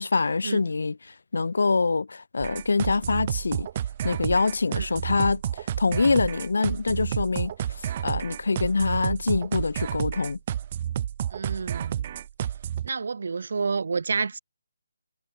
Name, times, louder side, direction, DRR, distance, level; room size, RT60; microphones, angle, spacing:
voice 1, 0.0-3.7 4.0-10.4, left 4 dB, 75° left, 2.0 m, -25 dB
sound 1, 2.4-12.9, right 10 dB, 25° right, 1.2 m, -31 dB
voice 2, 11.3-12.2 12.8-14.4, right 5 dB, 60° right, 2.5 m, -29 dB
hypercardioid pair, 170°, 0 cm